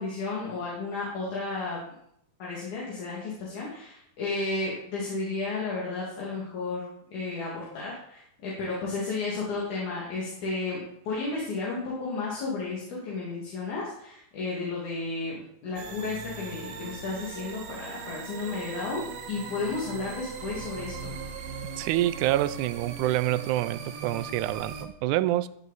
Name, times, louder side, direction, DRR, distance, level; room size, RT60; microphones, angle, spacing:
voice 1, 0.0-1.8 2.4-19.0 19.3-21.1, left 3 dB, 75° left, -5 dB, 3.5 m, -33 dB
sound 1, 15.8-24.9, right 5 dB, 65° right, 2.1 m, -39 dB
voice 2, 21.8-25.5, right 14 dB, 85° right, 15 dB, 2.0 m, -27 dB
14.5 x 7.1 x 4.1 m, 0.73 s
omnidirectional pair, 3.6 m